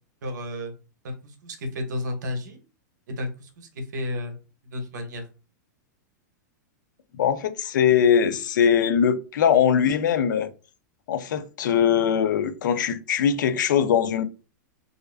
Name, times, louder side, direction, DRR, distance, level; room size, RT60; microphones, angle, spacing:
voice 1, 0.2-0.7 1.0-2.6 3.1-4.4 4.7-5.2, left 1 dB, 70° right, 0.7 m, -32 dB
voice 2, 7.1-10.5 11.1-14.2, left 8 dB, 80° left, 0.4 m, -21 dB
2.4 x 2.2 x 2.3 m
supercardioid pair, 175°, 10 cm